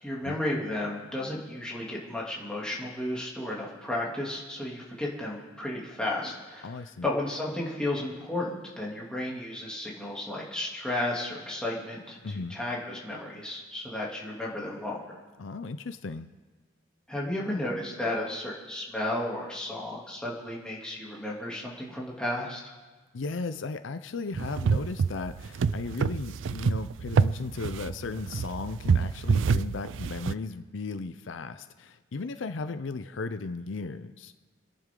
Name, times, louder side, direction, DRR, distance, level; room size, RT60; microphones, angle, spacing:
voice 1, 0.0-6.7 7.0-12.2 12.5-15.0 17.1-22.6, left 1 dB, 5° left, -5 dB, 2.8 m, -33 dB
voice 2, 6.6-7.1 12.2-12.6 15.4-16.3 23.1-34.3, left 3 dB, 75° left, 11 dB, 0.6 m, -36 dB
sound 1, 24.3-30.3, right 5 dB, 75° right, 0.4 m, -27 dB
27.0 x 10.5 x 3.8 m, 1.3 s
head